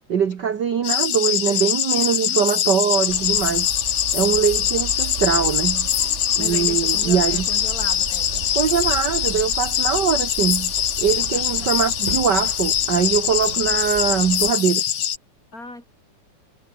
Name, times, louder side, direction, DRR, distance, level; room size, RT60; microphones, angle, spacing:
voice 1, 0.1-3.7 4.1-5.9 6.3-7.5 8.5-14.8, right 7 dB, 45° right, 1.5 m, -22 dB
sound 1, 0.8-15.2, left 10 dB, 55° left, 2.0 m, -23 dB
voice 2, 1.2-1.8 2.1-2.5 4.1-4.3 6.4-8.4 11.3-11.7 15.5-15.8, left 2 dB, 25° left, 6.1 m, -38 dB
sound 2, 3.1-14.5, right 6 dB, 65° right, 0.7 m, -35 dB
omnidirectional pair, 3.6 m